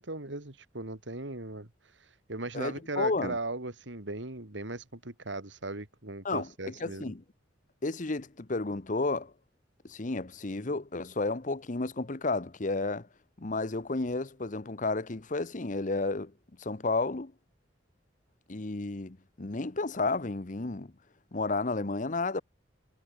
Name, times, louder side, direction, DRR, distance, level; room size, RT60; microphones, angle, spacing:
voice 1, 0.0-1.7 2.3-7.1, right 2 dB, 80° right, 2.9 m, -38 dB
voice 2, 2.5-3.4 6.2-7.2 7.8-9.3 9.9-13.1 13.4-16.3 16.6-17.3 18.5-20.9 21.3-22.4, left 3 dB, 45° left, 1.0 m, -32 dB
head